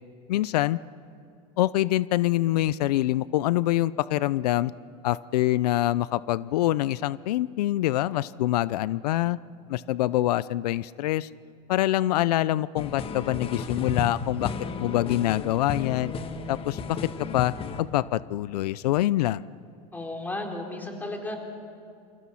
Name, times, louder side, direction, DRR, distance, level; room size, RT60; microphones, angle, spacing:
voice 1, 0.3-0.8 1.6-4.7 5.0-9.4 9.7-11.3 11.7-14.5 14.8-16.1 16.5-17.0 17.3-19.4, left 15 dB, 90° left, 19 dB, 0.5 m, -25 dB
sound 1, 12.8-17.8, left 5 dB, 30° left, 1.6 m, -33 dB
voice 2, 19.9-21.4, left 2 dB, 10° left, 2 dB, 3.8 m, -34 dB
28.5 x 26.0 x 5.8 m, 2.4 s
supercardioid pair, 130°, 20 cm